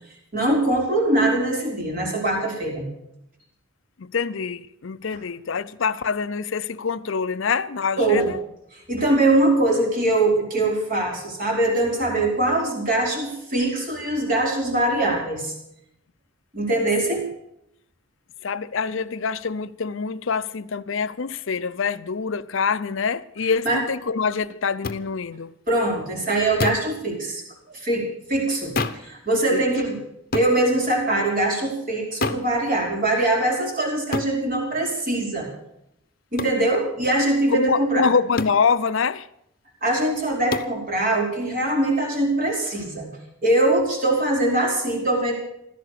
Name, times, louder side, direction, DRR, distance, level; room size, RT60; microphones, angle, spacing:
voice 1, 0.3-2.9 8.0-8.3 8.7-15.5 16.5-17.3 23.6-23.8 25.7-27.4 27.7-30.0 30.3-35.5 36.3-38.1 39.8-43.1 43.4-45.3, right 2 dB, 40° right, 5.0 m, -22 dB
voice 2, 4.0-8.4 18.4-25.5 29.5-29.7 37.5-39.3, left 5 dB, 65° left, 0.6 m, -25 dB
sound 1, 24.8-25.0 26.6-26.9 28.8-29.1 30.3-30.6 32.2-32.5 34.1-34.4 36.4-36.6 38.4-38.6 40.5-40.8, left 3 dB, 45° left, 0.9 m, -27 dB
16.0 x 13.5 x 6.7 m
head